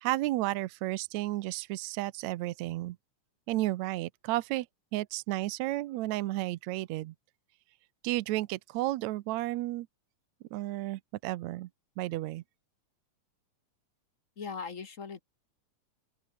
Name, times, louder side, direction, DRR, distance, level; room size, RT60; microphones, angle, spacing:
voice 1, 0.0-3.0 3.5-4.7 4.9-7.1 8.0-9.9 10.5-11.7 12.0-12.4, right 17 dB, 75° right, 1.8 m, -32 dB
voice 2, 14.4-15.2, left 5 dB, 45° left, 1.0 m, -39 dB
open air
omnidirectional pair, 3.7 m